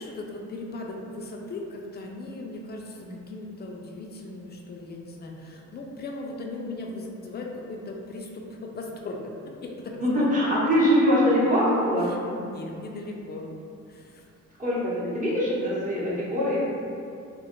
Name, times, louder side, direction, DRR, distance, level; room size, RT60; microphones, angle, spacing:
voice 1, 0.0-10.5 12.0-13.5 13.9-14.3, left 2 dB, 35° left, 0 dB, 0.4 m, -38 dB
voice 2, 10.0-12.1 14.6-16.6, equal, 25° right, -8 dB, 0.8 m, -23 dB
2.1 x 2.1 x 3.6 m, 2.4 s
cardioid pair, 90°, 30 cm